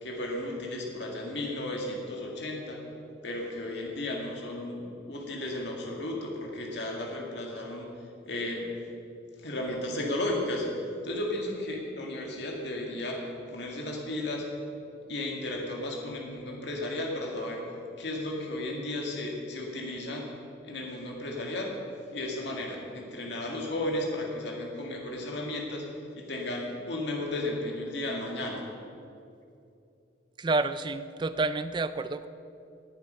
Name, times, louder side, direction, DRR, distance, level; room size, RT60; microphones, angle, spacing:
voice 1, 0.0-2.8 3.2-4.8 5.1-7.9 8.3-8.7 9.4-10.7 11.0-13.2 13.5-14.5 15.1-17.6 18.0-20.3 20.6-21.7 22.1-25.8 26.1-28.6, left 1 dB, 70° left, 0 dB, 2.0 m, -34 dB
voice 2, 30.4-32.3, right 3 dB, 25° right, 12 dB, 0.4 m, -29 dB
19.5 x 6.9 x 5.5 m, 2.6 s
head